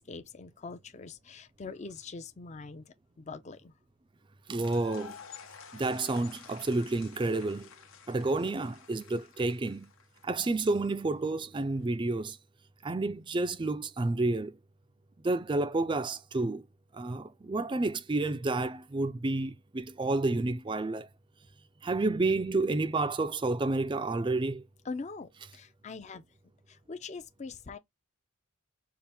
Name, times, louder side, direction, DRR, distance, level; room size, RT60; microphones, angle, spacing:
voice 1, 0.0-3.7 24.9-26.2 26.7-27.8, left 4 dB, 35° left, 0.5 m, -43 dB
sound 1, 4.5-10.5, left 7 dB, 70° left, 0.8 m, -51 dB
voice 2, 4.5-5.2 5.7-7.7 8.1-9.9 10.2-12.4 12.8-14.6 15.2-16.6 16.9-21.1 21.8-24.7, right 2 dB, 20° right, 0.4 m, -30 dB
5.7 x 2.5 x 3.4 m
head